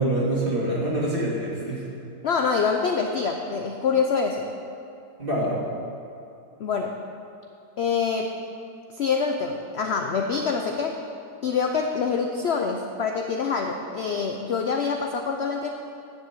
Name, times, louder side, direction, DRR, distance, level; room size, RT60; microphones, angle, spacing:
voice 1, 0.0-1.8 5.2-5.6, right 1 dB, 35° right, -5 dB, 2.6 m, -25 dB
voice 2, 2.2-4.5 6.6-7.0 7.8-8.3 9.0-11.0 11.4-15.7, left 5 dB, 55° left, 3 dB, 0.7 m, -25 dB
10.5 x 7.8 x 7.4 m, 2.6 s
omnidirectional pair, 1.7 m